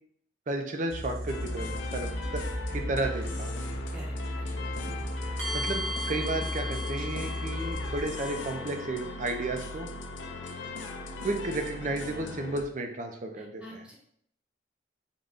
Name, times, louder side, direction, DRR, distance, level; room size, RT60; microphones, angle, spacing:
voice 1, 0.5-2.4 2.7-3.6 5.5-9.9 11.2-13.8, right 2 dB, 40° right, 4 dB, 0.4 m, -33 dB
sound 1, 0.9-8.7, equal, 85° right, 1.5 m, -36 dB
sound 2, 1.3-12.6, left 3 dB, 80° left, 0.4 m, -39 dB
voice 2, 3.9-4.6 4.8-5.1 13.4-14.0, equal, 5° right, -3 dB, 0.8 m, -48 dB
sound 3, 5.4-11.3, equal, 60° right, 1.1 m, -39 dB
3.8 x 2.2 x 3.5 m, 0.68 s
head